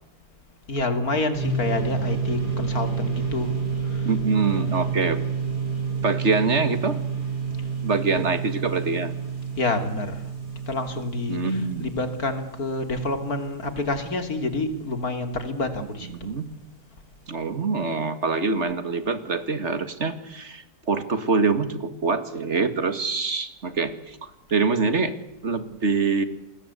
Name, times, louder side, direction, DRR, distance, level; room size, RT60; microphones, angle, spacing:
voice 1, 0.7-3.5 3.9-4.8 8.2-8.3 9.6-10.2 10.7-16.1, left 2 dB, 65° left, 8 dB, 3.2 m, -28 dB
sound 1, 1.4-14.9, right 6 dB, 80° right, 7.7 m, -30 dB
voice 2, 4.0-5.2 6.0-7.0 7.8-9.1 11.3-11.9 16.2-16.4 17.3-25.1 25.4-26.2, right 4 dB, 45° right, 11 dB, 2.3 m, -25 dB
28.5 x 21.0 x 8.3 m, 0.80 s
omnidirectional pair, 1.7 m